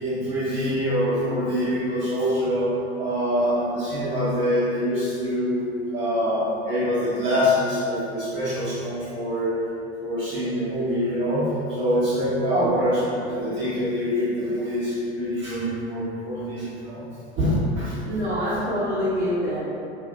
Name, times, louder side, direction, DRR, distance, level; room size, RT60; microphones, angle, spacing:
voice 1, 0.0-5.7 5.9-9.5 10.0-13.0 13.3-17.0 17.3-18.0, equal, 35° right, -12 dB, 1.0 m, -25 dB
voice 2, 18.0-19.6, equal, 65° right, -12 dB, 0.8 m, -25 dB
2.7 x 2.4 x 2.4 m, 2.7 s
figure-of-eight pair, 85°, 34 cm